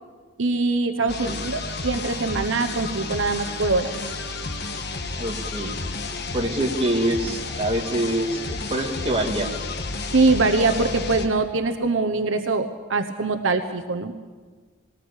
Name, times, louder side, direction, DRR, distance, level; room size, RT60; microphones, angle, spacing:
voice 1, 0.4-3.9 10.1-14.1, right 3 dB, 65° right, 5 dB, 1.1 m, -23 dB
voice 2, 1.0-1.5 5.2-5.7 6.3-9.5, right 1 dB, 25° right, 1 dB, 2.2 m, -25 dB
sound 1, 1.1-11.3, left 3 dB, 50° left, 1.5 m, -31 dB
20.5 x 19.0 x 8.4 m, 1.4 s
head